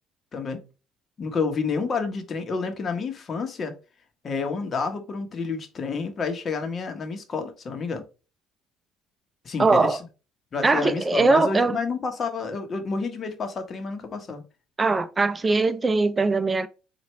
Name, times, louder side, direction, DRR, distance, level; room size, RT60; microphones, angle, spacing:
voice 1, 0.3-0.6 1.2-3.7 4.2-8.0 9.4-10.0 10.5-14.4, left 4 dB, 40° left, 1.0 m, -29 dB
voice 2, 9.6-10.0 10.6-11.8 14.8-16.7, right 3 dB, 20° right, 0.5 m, -21 dB
4.3 x 2.5 x 3.1 m
supercardioid pair, 95°, 0 cm